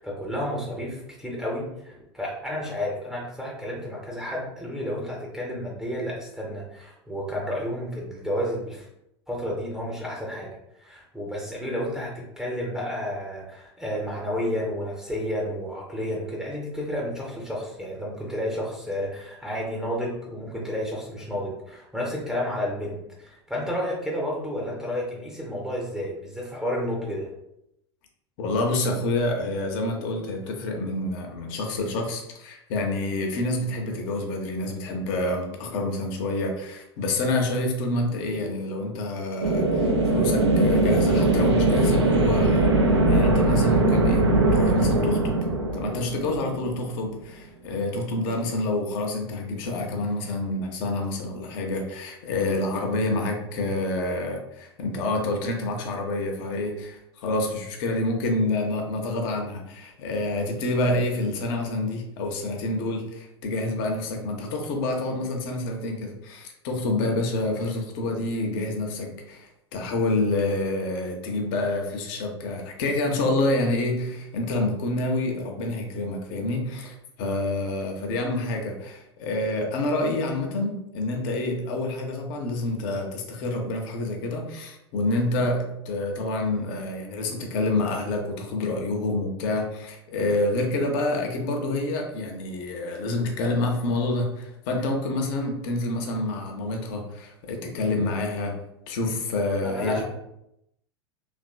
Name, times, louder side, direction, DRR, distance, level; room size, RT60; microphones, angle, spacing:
voice 1, 0.0-8.9 9.3-27.3 99.6-100.0, equal, 5° right, -3 dB, 0.6 m, -31 dB
voice 2, 28.4-42.7 43.1-45.3 45.7-98.5 98.9-100.0, left 2 dB, 50° left, 2 dB, 0.6 m, -28 dB
sound 1, 39.4-47.0, right 2 dB, 75° right, 0.4 m, -21 dB
2.9 x 2.5 x 2.3 m, 0.82 s
figure-of-eight pair, 85°, 14 cm